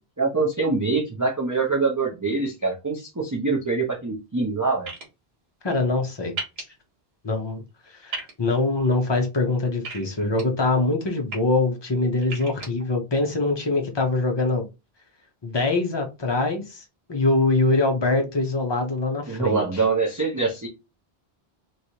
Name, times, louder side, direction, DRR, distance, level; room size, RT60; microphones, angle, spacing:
voice 1, 0.2-4.9 19.3-20.7, right 4 dB, 20° right, -1 dB, 0.7 m, -24 dB
sound 1, 4.9-5.0 6.4-6.6 8.1-8.3 9.8-10.4 11.1-11.4 12.2-12.7, right 4 dB, 80° right, 1.5 m, -33 dB
voice 2, 5.6-6.3 7.2-7.6 8.0-14.6 15.4-16.8 17.1-19.8, left 2 dB, 30° left, 3 dB, 0.7 m, -23 dB
3.1 x 3.1 x 2.8 m, 0.26 s
omnidirectional pair, 1.0 m